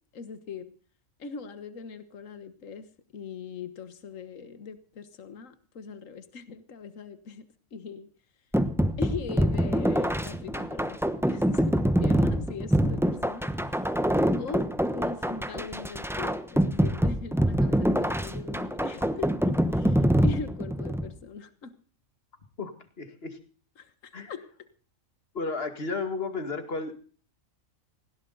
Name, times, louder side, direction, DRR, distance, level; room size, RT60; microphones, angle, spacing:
voice 1, 0.1-0.7 1.2-7.5 7.7-8.1 9.0-14.0 14.4-21.7 23.8-24.4, left 5 dB, 70° left, 11 dB, 1.7 m, -41 dB
sound 1, 8.5-21.1, equal, ahead, 0.9 m, -25 dB
voice 2, 22.6-23.4 24.1-24.3 25.3-26.9, left 3 dB, 45° left, 8 dB, 2.3 m, -33 dB
19.0 x 17.0 x 4.0 m, 0.42 s
omnidirectional pair, 1.4 m